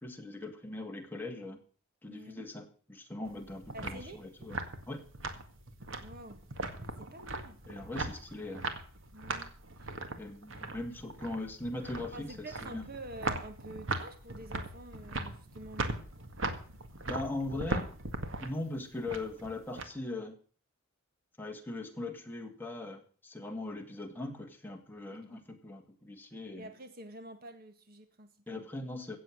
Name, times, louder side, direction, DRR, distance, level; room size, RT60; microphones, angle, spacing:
voice 1, 0.0-1.6 2.0-4.6 4.9-5.0 7.6-8.6 10.2-12.8 17.1-17.9 18.4-20.4 21.4-26.7 28.5-29.2, left 2 dB, 10° left, 2 dB, 2.2 m, -40 dB
sound 1, 3.2-19.8, right 2 dB, 60° right, 1.9 m, -39 dB
voice 2, 3.7-4.2 6.0-6.4 6.8-7.6 9.1-9.5 9.8-10.0 12.1-16.0 25.1-25.2 26.5-28.7, right 1 dB, 45° right, 7 dB, 1.7 m, -48 dB
16.5 x 7.9 x 6.2 m, 0.42 s
head